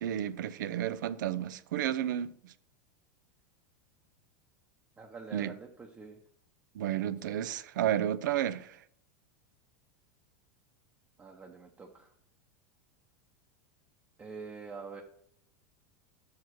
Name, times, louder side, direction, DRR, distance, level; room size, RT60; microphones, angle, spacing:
voice 1, 0.0-2.5 5.3-5.5 6.7-8.8, right 11 dB, 85° right, 0.5 m, -32 dB
voice 2, 5.0-6.2 11.2-12.1 14.2-15.0, right 4 dB, 15° right, 0.8 m, -46 dB
5.9 x 4.8 x 6.2 m
supercardioid pair, 135°, 10 cm